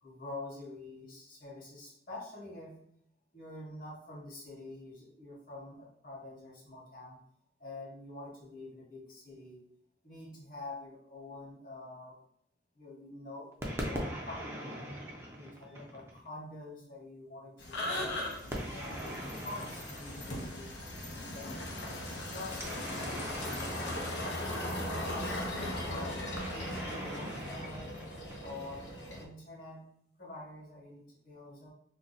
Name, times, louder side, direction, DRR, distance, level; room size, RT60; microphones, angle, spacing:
voice 1, 0.0-2.8 3.3-7.2 7.6-9.6 10.0-12.2 12.8-13.5 13.9-14.9 15.4-18.2 18.7-20.7 21.0-21.7 22.2-23.7 24.2-25.5 25.9-27.9 28.4-28.9 29.2-29.9 30.2-31.7, left 2 dB, 50° left, -4 dB, 1.1 m, -46 dB
sound 1, 13.6-16.3 18.5-20.9 22.5-25.0 26.4-28.8, equal, 15° right, 0.6 m, -41 dB
sound 2, 17.6-29.2, left 1 dB, 85° left, 0.7 m, -38 dB
2.6 x 2.2 x 4.0 m, 0.70 s
head